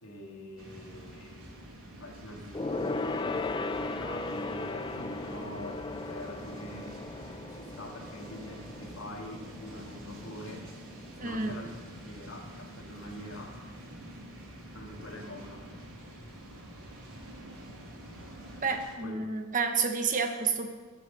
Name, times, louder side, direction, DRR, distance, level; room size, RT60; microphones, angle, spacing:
voice 1, 0.0-1.4 1.9-7.0 7.5-10.7 11.2-11.8 12.1-13.6 14.7-15.7 19.0-19.2, left 1 dB, 60° left, 0 dB, 2.4 m, -45 dB
sound 1, 0.6-18.9, right 1 dB, 75° right, 2.9 m, -47 dB
Gong, 2.5-12.3 12.6-12.9 13.2-13.3, left 3 dB, 20° left, 0.4 m, -37 dB
voice 2, 11.2-11.6 18.6-20.7, right 5 dB, 35° right, 5 dB, 1.0 m, -30 dB
17.0 x 6.6 x 6.6 m, 1.4 s
head